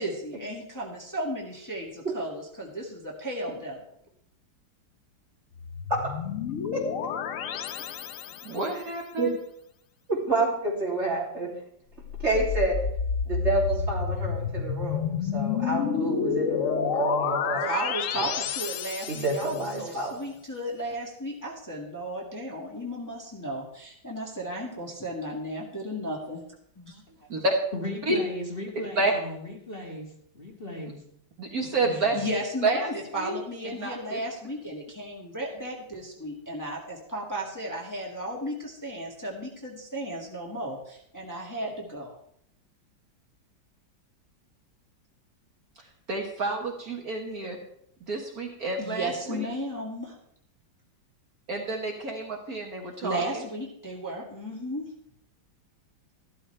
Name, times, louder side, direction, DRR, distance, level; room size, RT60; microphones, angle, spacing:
voice 1, 0.0-3.8 17.6-26.4 26.8-27.0 27.3-27.4 32.1-42.1 48.8-50.2 53.0-54.8, right 1 dB, 10° left, -3 dB, 1.9 m, -34 dB
sound 1, 5.5-8.7 12.0-19.7, left 7 dB, 70° left, 0.7 m, -30 dB
voice 2, 6.7-7.1 7.5-7.8 8.5-8.6 9.2-9.3 10.1-11.5 12.2-12.8 13.3-17.7 18.2-18.3 19.1-20.2, right 2 dB, 35° right, -3 dB, 3.2 m, -29 dB
voice 3, 8.4-9.3 27.3-27.5 28.1-28.2 29.0-29.1 31.4-32.1 32.6-33.4 33.6-34.2 46.1-47.6 48.1-49.5 51.5-53.5, right 2 dB, 50° right, 1 dB, 1.7 m, -29 dB
voice 4, 27.7-30.1 30.3-31.0 31.6-32.2, left 1 dB, 30° left, -1 dB, 2.1 m, -37 dB
14.0 x 12.5 x 3.3 m, 0.71 s
omnidirectional pair, 2.1 m